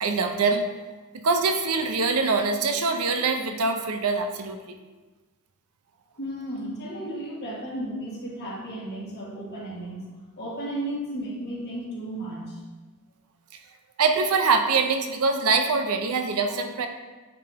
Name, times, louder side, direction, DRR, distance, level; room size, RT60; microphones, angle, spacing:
voice 1, 0.0-0.7 1.1-4.6 14.0-16.9, right 4 dB, 75° right, 6 dB, 0.6 m, -24 dB
voice 2, 6.2-10.0 10.4-12.6, right 1 dB, 45° left, -5 dB, 1.6 m, -34 dB
8.8 x 3.3 x 3.4 m, 1.3 s
head